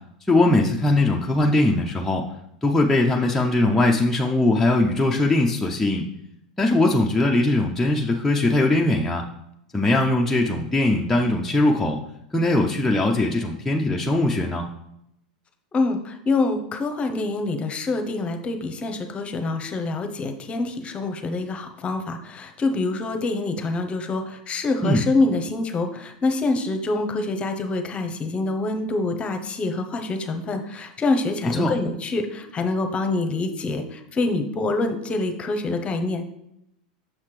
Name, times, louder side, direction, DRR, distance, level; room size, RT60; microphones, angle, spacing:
voice 1, 0.3-2.2 2.6-6.1 6.6-9.2 9.7-12.0 12.3-14.7 24.8-25.0 31.4-31.7, left 2 dB, 5° left, -1 dB, 0.6 m, -20 dB
voice 2, 15.7-36.2, left 3 dB, 25° left, 6 dB, 0.9 m, -26 dB
6.5 x 5.7 x 3.3 m, 0.80 s
hypercardioid pair, 105°, 4 cm